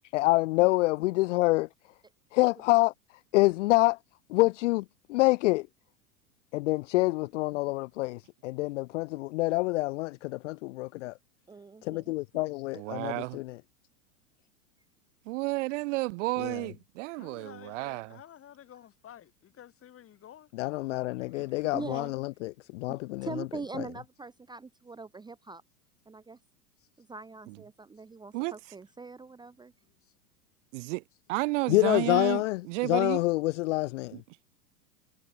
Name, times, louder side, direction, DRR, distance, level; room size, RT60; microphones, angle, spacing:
voice 1, 0.1-1.7 2.3-4.0 4.3-5.7 6.5-11.2 11.8-13.6 16.4-16.5 20.5-23.5 31.7-34.2, left 21 dB, 50° left, 0.6 m, -27 dB
voice 2, 11.5-12.1 21.3-22.1 22.9-25.6 26.1-26.4 27.0-29.7, right 4 dB, 10° right, 1.1 m, -42 dB
voice 3, 12.7-13.4 15.2-18.2 27.5-27.6 28.3-28.5 30.7-31.0 31.3-33.2 34.1-34.2, right 23 dB, 50° right, 0.9 m, -32 dB
voice 4, 17.2-20.5 26.8-27.1 28.0-28.2 29.8-30.2, left 10 dB, 30° left, 3.7 m, -52 dB
hypercardioid pair, 100°, 47 cm